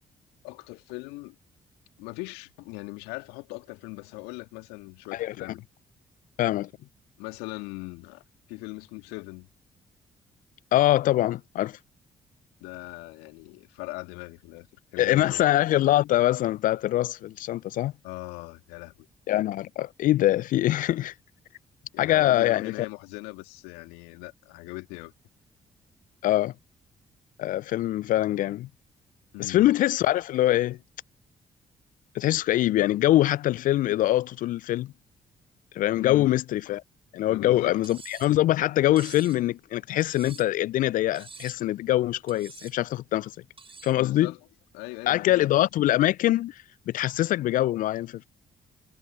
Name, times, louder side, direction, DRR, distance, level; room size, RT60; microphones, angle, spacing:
voice 1, 0.4-1.4 2.0-5.6 7.2-8.2 8.5-9.5 12.6-14.7 14.9-15.4 18.0-19.1 21.9-25.1 29.3-29.7 36.0-36.3 37.3-37.8 44.0-44.4 44.7-45.5, left 25 dB, 75° left, 2.2 m, -39 dB
voice 2, 6.4-6.7 10.7-11.8 15.0-17.9 19.3-21.1 22.0-22.7 26.2-26.5 27.4-28.7 29.4-30.8 32.1-34.9 35.7-36.8 37.1-43.3 43.8-44.3 45.1-48.2, left 14 dB, 55° left, 0.4 m, -24 dB
Cutlery silverware, 37.8-38.4 39.0-39.4 40.0-40.6 41.2-41.7 42.3-42.8 43.6-44.0, right 4 dB, 35° right, 6.5 m, -47 dB
figure-of-eight pair, 40°, 17 cm